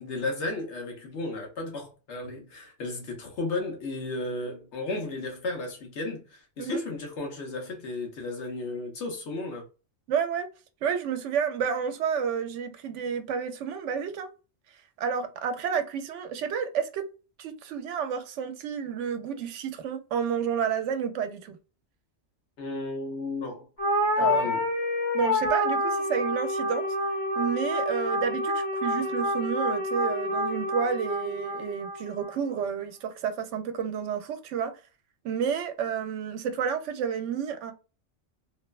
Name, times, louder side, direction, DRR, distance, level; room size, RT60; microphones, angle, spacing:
voice 1, 0.0-9.6 22.6-23.7 24.2-24.7, left 2 dB, 70° left, 1.2 m, -34 dB
voice 2, 10.1-10.5 10.8-14.3 15.0-17.0 17.4-21.6 24.2-24.5 25.1-26.9 27.4-34.7 35.2-37.7, right 7 dB, 85° right, 0.9 m, -30 dB
sound 1, 23.8-32.4, left 1 dB, 30° left, 1.2 m, -28 dB
3.0 x 2.2 x 2.3 m
omnidirectional pair, 1.2 m